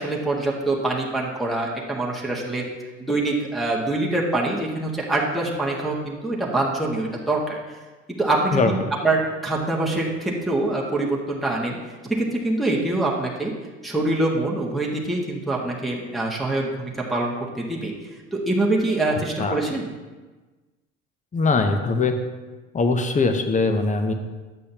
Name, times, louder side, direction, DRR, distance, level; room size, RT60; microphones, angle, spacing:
voice 1, 0.0-2.6 3.0-7.6 8.1-11.8 12.0-13.5 13.8-17.9 18.3-19.9, right 2 dB, ahead, -4 dB, 1.6 m, -24 dB
voice 2, 19.1-19.6 21.3-22.2 22.7-24.1, left 3 dB, 20° left, 7 dB, 0.9 m, -21 dB
11.0 x 8.3 x 2.9 m, 1.3 s
figure-of-eight pair, 65°, 38 cm